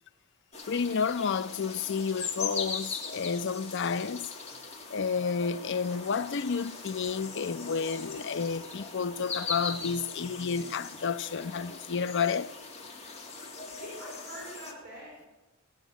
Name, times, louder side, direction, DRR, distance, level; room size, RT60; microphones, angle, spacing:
sound 1, 0.5-14.7, left 4 dB, 30° left, 2.0 m, -40 dB
voice 1, 0.7-4.3 4.9-12.5, left 5 dB, 55° left, 0.5 m, -31 dB
voice 2, 13.6-15.3, right 1 dB, 40° right, 5.0 m, -45 dB
16.0 x 6.4 x 9.1 m
head